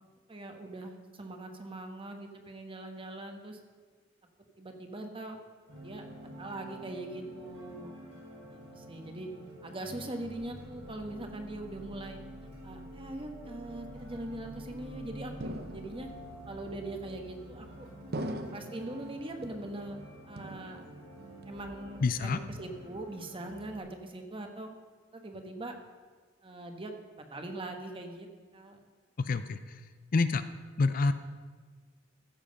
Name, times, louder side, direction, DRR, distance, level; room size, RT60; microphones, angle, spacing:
voice 1, 0.3-3.6 4.6-5.4 5.8-6.1 6.4-7.9 8.5-9.3 9.6-12.2 12.6-16.1 16.5-17.9 18.5-20.0 20.3-20.9 21.4-24.7 25.1-25.8 26.4-28.3 28.5-28.8, right 1 dB, 30° right, 5 dB, 1.2 m, -41 dB
sound 1, 5.7-23.8, right 1 dB, 80° right, 4.4 m, -48 dB
sound 2, 15.4-16.3 17.1-17.6 18.1-18.9 19.4-20.0 20.4-21.1 21.4-21.9 22.3-22.9, right 1 dB, 55° right, 0.7 m, -41 dB
voice 2, 22.0-22.4 29.2-29.6 30.1-30.4 30.8-31.1, left 3 dB, 45° left, 11 dB, 0.5 m, -27 dB
15.0 x 7.5 x 5.2 m, 1.5 s
head